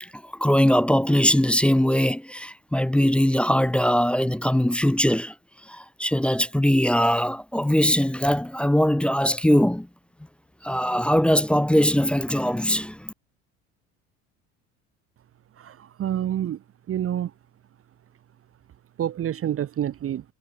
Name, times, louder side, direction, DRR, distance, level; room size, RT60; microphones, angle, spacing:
voice 1, 0.0-5.3 5.7-9.9 10.6-13.1, equal, 5° left, 0.5 m, -21 dB
voice 2, 15.6-16.6 16.9-17.3 19.0-20.2, right 11 dB, 30° right, 1.0 m, -28 dB
figure-of-eight pair, 65°, 42 cm